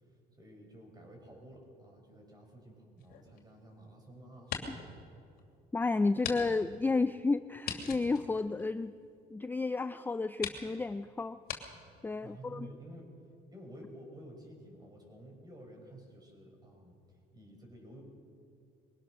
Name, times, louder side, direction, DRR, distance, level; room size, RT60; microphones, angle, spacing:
voice 1, 0.1-5.1 12.2-13.1 13.5-18.0, right 1 dB, 25° right, 2 dB, 5.8 m, -52 dB
sound 1, 3.0-4.0 4.3-4.9 5.4-5.5 6.2-6.4 6.7-6.8 7.6-9.2 9.9-10.0 10.4-10.6 11.4-11.6, left 8 dB, 65° left, 2.7 m, -40 dB
voice 2, 5.7-8.9 9.3-11.4 12.0-12.7, left 3 dB, 10° left, 12 dB, 0.4 m, -32 dB
22.5 x 18.0 x 6.4 m, 2.4 s
cardioid pair, 110°, 17 cm